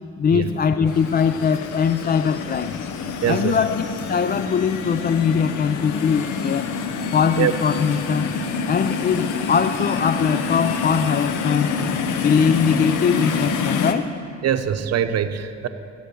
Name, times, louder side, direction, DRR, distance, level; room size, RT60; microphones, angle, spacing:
voice 1, 0.2-2.8 3.3-6.7 7.1-8.3 8.7-11.8 12.2-14.1, left 6 dB, 30° left, 11 dB, 0.4 m, -21 dB
sound 1, 0.9-13.9, left 5 dB, 85° left, 0.8 m, -27 dB
voice 2, 3.2-3.6 7.4-7.5 14.4-15.7, right 9 dB, 55° right, 9 dB, 0.8 m, -23 dB
15.5 x 7.8 x 6.9 m, 2.5 s
cardioid pair, 90°, 30 cm